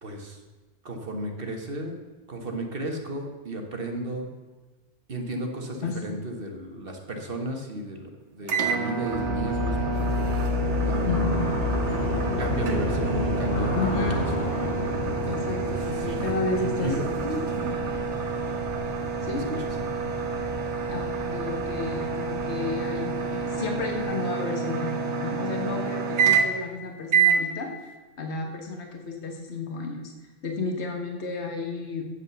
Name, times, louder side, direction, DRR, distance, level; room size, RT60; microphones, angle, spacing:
voice 1, 0.0-0.4 0.8-1.9 2.3-4.3 5.1-9.9 10.8-11.5 12.4-14.5 16.0-16.2 16.6-17.4 19.3-19.4, right 1 dB, 50° right, 3 dB, 1.5 m, -33 dB
sound 1, 8.5-26.7 27.1-27.4, right 6 dB, 80° right, 1.4 m, -28 dB
sound 2, 9.1-24.0, left 2 dB, 50° left, 2.1 m, -31 dB
voice 2, 11.1-11.5 13.7-14.2 15.3-17.0 19.2-19.4 20.9-27.9 28.2-30.1 30.4-32.0, left 3 dB, 70° left, 2 dB, 1.7 m, -32 dB
8.2 x 8.1 x 7.0 m, 1.3 s
omnidirectional pair, 1.2 m